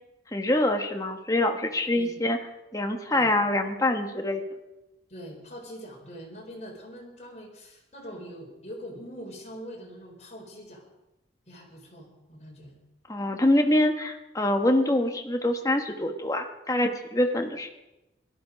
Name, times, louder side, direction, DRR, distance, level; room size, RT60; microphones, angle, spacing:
voice 1, 0.3-2.4 2.7-4.4 13.1-17.7, left 1 dB, 20° left, 4 dB, 1.2 m, -25 dB
voice 2, 5.1-10.8 11.5-12.8, equal, 40° left, -1 dB, 4.3 m, -43 dB
17.5 x 12.5 x 5.2 m, 0.96 s
head